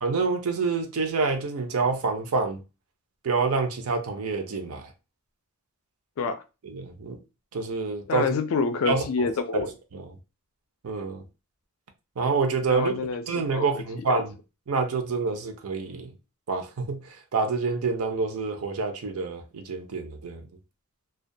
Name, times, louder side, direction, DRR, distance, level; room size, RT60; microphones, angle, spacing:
voice 1, 0.0-2.6 3.2-4.9 6.6-7.2 7.5-8.3 8.9-9.3 9.6-10.2 10.8-11.2 12.2-12.9 13.3-14.3 14.7-16.1 16.5-20.5, right 4 dB, 70° right, 0.5 m, -27 dB
voice 2, 8.1-9.7 12.7-13.2 13.5-14.0, left 4 dB, 65° left, 0.3 m, -27 dB
2.3 x 2.1 x 2.6 m
head